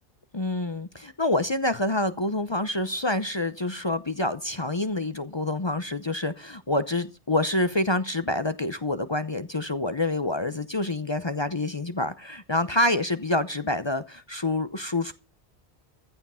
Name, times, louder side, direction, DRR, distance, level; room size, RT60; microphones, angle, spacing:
voice 1, 0.3-15.1, left 2 dB, 30° left, 0.7 m, -27 dB
15.0 x 9.8 x 5.6 m
omnidirectional pair, 1.1 m